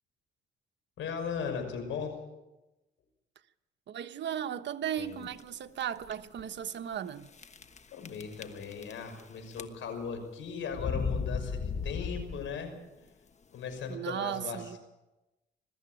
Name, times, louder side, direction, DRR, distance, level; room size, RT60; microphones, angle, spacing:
voice 1, 1.0-2.2 7.9-12.7 13.5-14.8, left 6 dB, 75° left, 6.0 m, -37 dB
voice 2, 3.9-7.3 13.9-14.8, right 9 dB, 65° right, 1.3 m, -36 dB
sound 1, 5.0-5.4 6.0-6.1 6.4-6.5 7.4-7.8 8.1-9.2 9.5-10.1 10.7-12.7, left 5 dB, 35° left, 1.3 m, -35 dB
22.0 x 13.5 x 9.2 m
cardioid pair, 90°, 20 cm